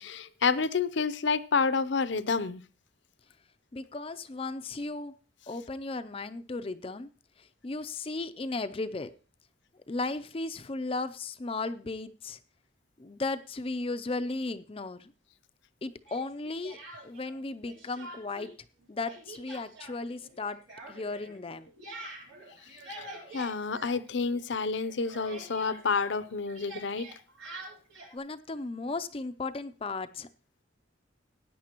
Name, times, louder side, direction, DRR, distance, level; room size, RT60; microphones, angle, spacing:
voice 1, 0.0-2.6 22.9-23.1 23.3-27.1, left 5 dB, 70° left, 15 dB, 0.6 m, -29 dB
voice 2, 3.7-5.1 5.5-7.1 7.4-9.1 9.9-12.4 13.0-15.1 15.8-16.8 17.0-18.5 18.9-20.6 20.9-21.7 28.1-30.3, left 3 dB, 30° left, 11 dB, 0.5 m, -35 dB
Speech, 16.0-17.4 17.7-18.5 18.8-24.5 24.8-28.2, right 2 dB, 90° right, 3.8 m, -46 dB
16.0 x 9.5 x 3.0 m, 0.37 s
head